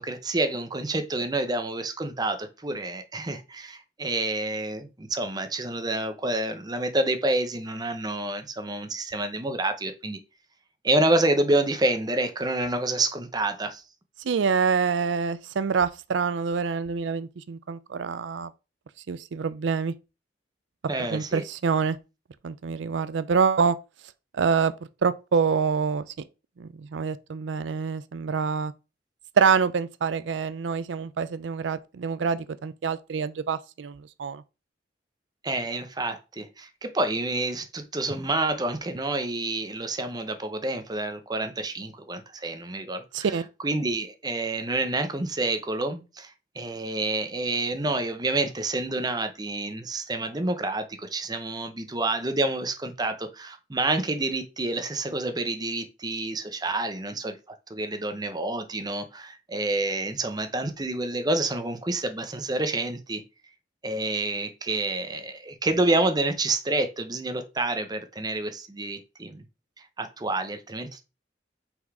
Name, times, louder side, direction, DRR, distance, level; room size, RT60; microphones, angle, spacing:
voice 1, 0.0-10.2 10.8-13.8 20.9-21.4 35.4-43.3 43.6-63.2 63.8-69.4 70.0-71.0, right 2 dB, 20° right, 0.8 m, -28 dB
voice 2, 14.2-18.5 19.1-19.9 21.1-22.0 22.4-23.8 24.3-24.7 25.0-26.1 26.6-28.7 29.4-34.4 43.1-43.4, right 5 dB, 85° right, 0.4 m, -26 dB
5.9 x 4.0 x 4.8 m
head